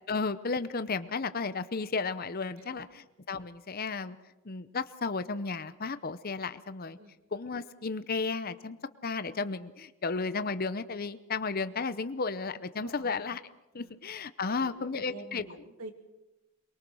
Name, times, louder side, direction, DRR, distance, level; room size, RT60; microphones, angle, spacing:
voice 1, 0.1-4.2 4.4-7.0 7.3-8.8 9.0-13.4 13.7-15.4, left 4 dB, 40° left, 13 dB, 0.7 m, -33 dB
voice 2, 12.8-13.1 13.7-14.0 14.5-15.9, right 2 dB, 80° right, 5 dB, 2.7 m, -47 dB
23.5 x 22.0 x 6.3 m, 1.0 s
head